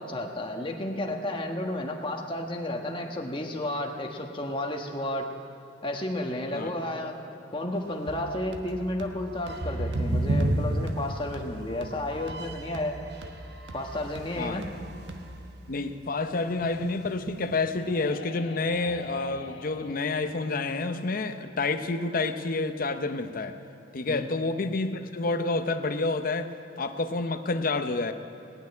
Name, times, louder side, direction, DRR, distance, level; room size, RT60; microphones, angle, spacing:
voice 1, 0.0-5.3 5.8-7.2 7.5-13.0 13.7-14.6 24.1-24.3, left 1 dB, 30° left, 2 dB, 1.3 m, -32 dB
sound 1, 8.1-15.6, right 1 dB, 90° right, 1.2 m, -44 dB
sound 2, 9.4-12.8 13.1-15.4 15.7-15.9 16.2-17.9, right 1 dB, 60° right, 1.0 m, -32 dB
voice 2, 15.7-23.6 23.9-28.1, left 3 dB, 50° left, 9 dB, 0.7 m, -29 dB
sound 3, 17.7-21.8, left 3 dB, 80° left, 1.0 m, -46 dB
18.5 x 6.6 x 9.5 m, 2.9 s
head